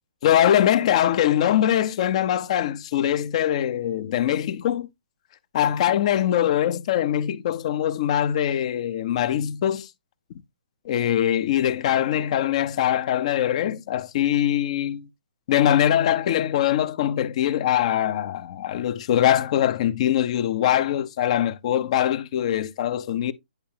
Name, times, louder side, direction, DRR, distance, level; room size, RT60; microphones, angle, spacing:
voice 1, 0.2-4.9 5.5-9.9 10.8-15.1 15.5-23.3, left 11 dB, 40° left, 0.7 m, -22 dB
10.5 x 4.6 x 2.8 m
figure-of-eight pair, 130°, 5 cm